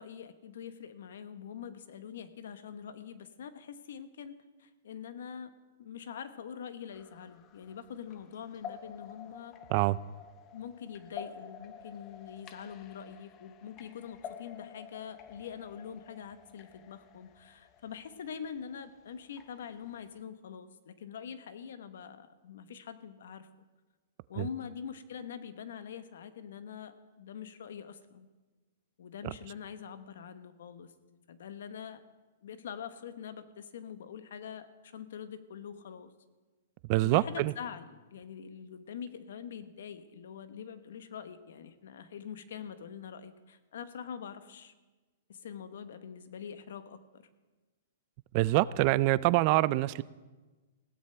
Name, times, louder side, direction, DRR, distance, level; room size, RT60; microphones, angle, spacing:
voice 1, 0.0-5.5 5.8-9.6 10.5-23.5 24.3-28.3 29.0-30.9 31.3-32.0 32.4-36.1 37.0-44.7 45.3-47.3, left 7 dB, 75° left, 11 dB, 1.1 m, -44 dB
sound 1, 6.9-20.2, left 8 dB, 30° left, 0.7 m, -50 dB
voice 2, 36.9-37.5 48.3-50.0, right 18 dB, 40° right, 18 dB, 0.3 m, -25 dB
19.5 x 16.0 x 3.4 m, 1.2 s
hypercardioid pair, 150°, 0 cm